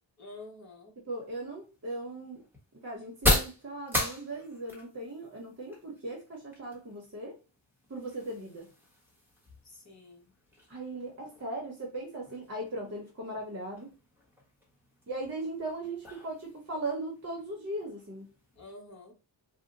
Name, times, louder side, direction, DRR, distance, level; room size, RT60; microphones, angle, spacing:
voice 1, 0.2-0.9 9.6-10.3 18.5-19.2, left 2 dB, 35° left, -2 dB, 1.2 m, -48 dB
voice 2, 1.0-2.4 2.8-7.4 7.9-8.7 10.7-13.9 15.1-18.3, right 2 dB, 30° right, -2 dB, 0.9 m, -38 dB
sound 1, 1.1-18.7, left 1 dB, 5° right, 1.3 m, -38 dB
2.7 x 2.2 x 3.9 m, 0.33 s
wide cardioid pair, 175°, 48 cm